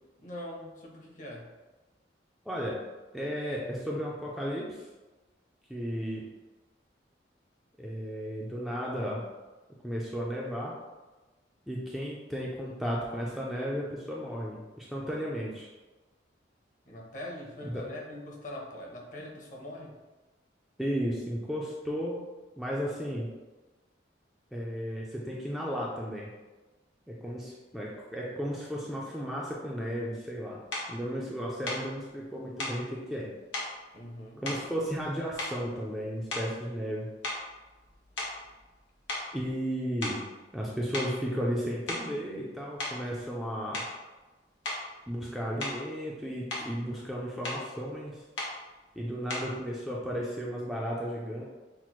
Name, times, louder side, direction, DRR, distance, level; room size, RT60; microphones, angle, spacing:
voice 1, 0.2-1.5 16.9-19.9 27.3-27.4 33.9-34.4, left 1 dB, 45° left, -1 dB, 0.9 m, -42 dB
voice 2, 2.5-2.8 3.1-4.9 5.7-6.3 7.8-9.2 9.8-10.7 11.7-15.7 17.7-17.8 20.8-22.2 22.6-23.3 24.5-26.3 27.1-30.6 30.9-33.3 34.4-37.1 39.3-40.2 40.5-43.8 45.1-48.2 48.9-51.4, equal, ahead, -5 dB, 0.4 m, -34 dB
sound 1, 30.7-30.9 31.6-31.9 32.6-32.8 33.5-33.7 34.4-35.1 35.4-35.8 36.3-36.6 37.2-38.8 39.1-39.3 40.0-40.3 40.9-41.2 41.7-42.2 42.8-43.0 43.7-44.0 44.6-44.9 45.6-45.9 46.3-46.7 47.4-47.7 48.4-48.6 49.3-49.6, left 2 dB, 85° left, 1.1 m, -36 dB
5.8 x 2.1 x 3.0 m, 1.2 s
head